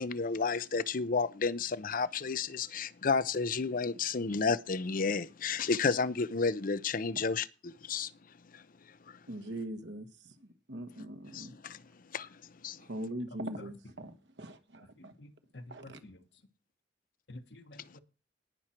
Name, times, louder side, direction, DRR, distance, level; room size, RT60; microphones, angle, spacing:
voice 1, 0.0-8.1 8.5-9.2 9.5-9.6 11.0-13.1 17.8-18.0, left 4 dB, 50° left, 0.6 m, -32 dB
voice 2, 9.3-10.1 10.7-11.5 12.9-15.1 15.7-16.0, right 1 dB, 75° right, 1.6 m, -41 dB
voice 3, 15.0-16.2 17.3-18.0, left 1 dB, 75° left, 1.5 m, -50 dB
18.5 x 6.3 x 4.4 m
head